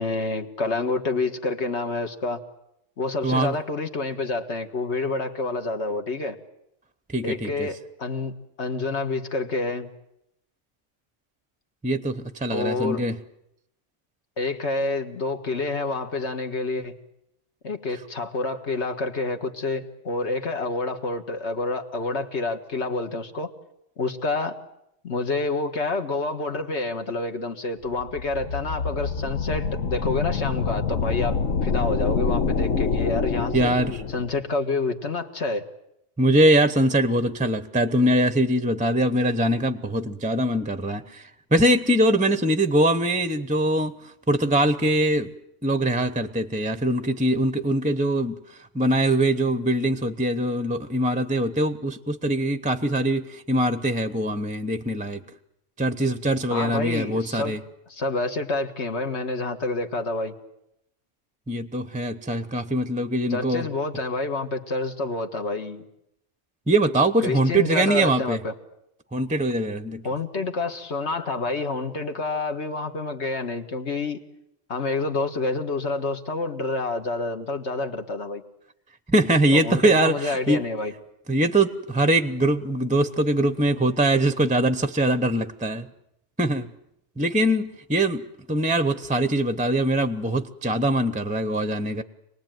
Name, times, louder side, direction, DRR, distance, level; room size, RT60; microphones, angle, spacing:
voice 1, 0.0-2.4 3.0-6.4 7.2-8.3 8.6-9.9 12.5-13.0 14.4-16.9 17.6-23.5 24.0-24.6 25.0-33.7 34.1-35.6 56.5-57.6 57.9-60.3 63.3-65.8 67.2-68.5 70.0-74.2 74.7-78.4 79.5-80.9, left 3 dB, 60° left, 6 dB, 1.9 m, -28 dB
voice 2, 3.2-3.5 7.1-7.7 11.8-13.2 33.5-34.0 36.2-45.3 45.6-48.4 48.7-55.2 55.8-57.6 61.5-63.7 66.7-68.4 69.1-70.1 79.1-80.6 81.3-85.9 86.4-86.7 87.2-92.0, right 1 dB, 10° right, 12 dB, 0.6 m, -22 dB
sound 1, 28.0-34.4, left 5 dB, 80° left, 1.6 m, -26 dB
26.0 x 19.0 x 9.2 m, 0.82 s
omnidirectional pair, 1.3 m